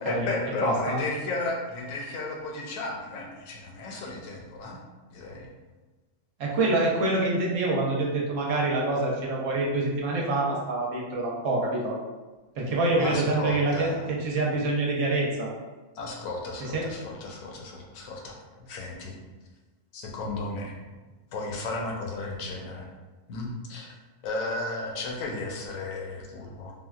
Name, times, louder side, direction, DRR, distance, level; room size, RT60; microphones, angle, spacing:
voice 1, 0.0-4.8 5.1-5.5 12.9-14.0 16.0-19.1 19.9-20.8 21.3-22.9 23.3-23.9 24.2-26.7, left 2 dB, 70° left, -1 dB, 1.0 m, -34 dB
voice 2, 0.6-1.0 6.4-12.0 12.5-15.5 16.7-16.9, right 2 dB, 65° right, -3 dB, 0.9 m, -26 dB
3.6 x 2.2 x 2.3 m, 1.2 s
omnidirectional pair, 1.5 m